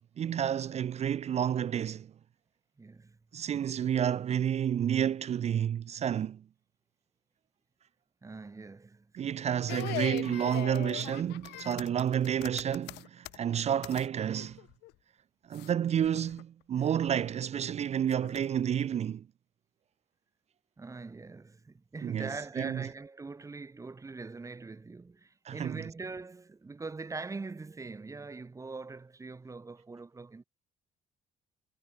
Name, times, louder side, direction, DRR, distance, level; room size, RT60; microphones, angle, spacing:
voice 1, 0.2-2.1 3.3-6.4 9.1-14.6 15.5-19.3 22.0-22.3 22.6-22.9 25.5-25.8, right 9 dB, 40° right, 0.5 m, -30 dB
voice 2, 2.8-3.2 8.2-9.5 20.8-30.4, right 3 dB, 20° right, 1.3 m, -43 dB
sound 1, 9.7-14.1 14.4-14.9 15.5-15.7 16.0-16.4 16.9-17.5 18.1-18.7, left 21 dB, 80° left, 0.5 m, -41 dB
cardioid pair, 110°, 17 cm